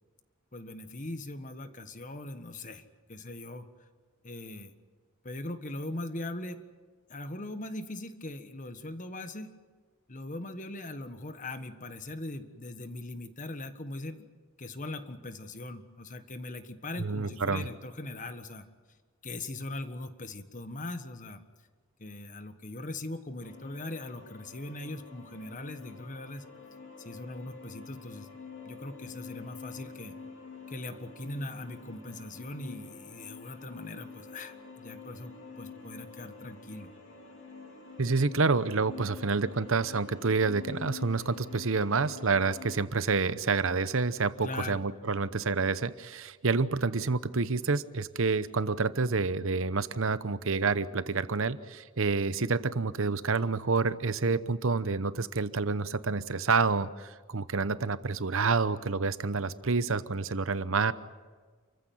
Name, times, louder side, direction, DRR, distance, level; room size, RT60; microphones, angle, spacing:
voice 1, 0.5-3.7 4.2-4.7 5.2-6.6 7.1-9.5 10.1-14.3 14.6-18.6 19.2-21.4 22.0-26.5 27.0-28.3 28.6-30.1 30.7-36.9 44.4-44.8, left 2 dB, 35° left, 9 dB, 1.5 m, -40 dB
voice 2, 17.0-17.7 38.0-60.9, right 4 dB, 60° right, 15 dB, 0.9 m, -28 dB
sound 1, 23.4-42.8, left 4 dB, 55° left, 4.2 m, -47 dB
29.0 x 15.0 x 9.3 m, 1.5 s
head